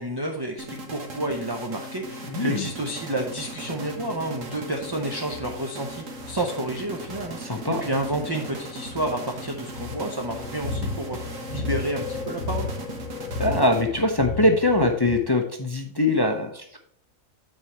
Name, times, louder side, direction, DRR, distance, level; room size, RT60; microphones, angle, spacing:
voice 1, 0.0-12.7, right 1 dB, 25° right, 2 dB, 0.6 m, -30 dB
sound 1, 0.6-14.2, right 2 dB, 70° right, 1.7 m, -38 dB
voice 2, 2.3-2.7 7.4-7.8 13.4-16.8, left 2 dB, 25° left, 4 dB, 0.5 m, -22 dB
sound 2, 4.8-15.2, left 3 dB, 75° left, 1.2 m, -35 dB
8.7 x 4.5 x 4.5 m, 0.64 s
omnidirectional pair, 1.4 m